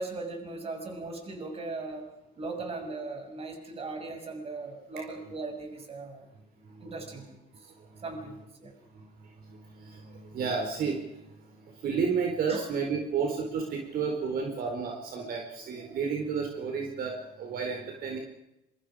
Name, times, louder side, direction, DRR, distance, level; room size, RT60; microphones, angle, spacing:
voice 1, 0.0-2.1 2.4-6.3 6.8-7.7 8.0-8.7 12.5-12.6, right 3 dB, 35° right, 4 dB, 6.8 m, -38 dB
voice 2, 9.5-11.0 11.8-18.2, right 5 dB, 60° right, 2 dB, 4.7 m, -31 dB
27.0 x 24.5 x 5.1 m, 0.91 s
cardioid pair, 110°, 17 cm